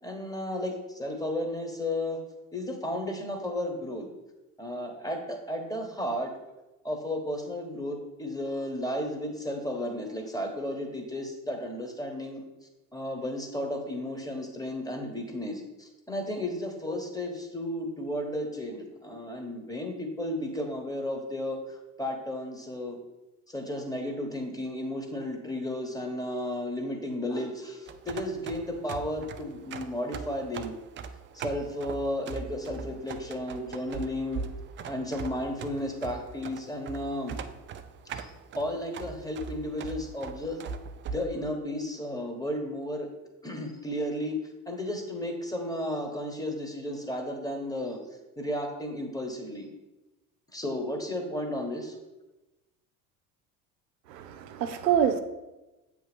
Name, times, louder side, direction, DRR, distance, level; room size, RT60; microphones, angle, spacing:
voice 1, 0.0-2.2 2.5-4.1 4.6-6.3 6.8-12.4 12.9-23.0 23.5-30.7 31.3-34.5 34.9-37.4 38.1-40.6 41.1-43.1 43.4-44.4 44.7-48.0 48.4-49.7 50.5-52.0, left 1 dB, 5° left, 3 dB, 1.3 m, -33 dB
sound 1, 27.9-41.3, right 5 dB, 25° right, 0.4 m, -41 dB
voice 2, 54.1-55.2, right 9 dB, 85° right, 8 dB, 0.6 m, -26 dB
7.5 x 3.2 x 5.2 m, 1.0 s
hypercardioid pair, 70°, 48 cm